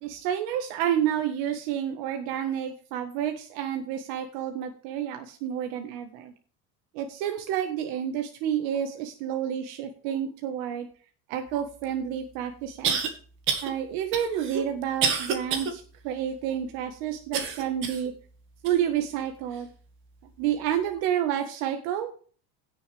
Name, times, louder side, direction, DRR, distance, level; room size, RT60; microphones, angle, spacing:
voice 1, 0.0-6.3 6.9-10.9 11.3-13.1 13.6-18.1 18.6-19.7 20.4-22.1, right 10 dB, 70° right, 5 dB, 1.6 m, -29 dB
sound 1, 11.8-11.9 12.8-13.1 13.5-13.7 14.1-15.7 16.2-16.3 17.3-18.1 18.6-18.8 19.5-19.6, right 6 dB, 40° right, 1.9 m, -28 dB
16.5 x 6.8 x 3.5 m, 0.41 s
cardioid pair, 180°, 32 cm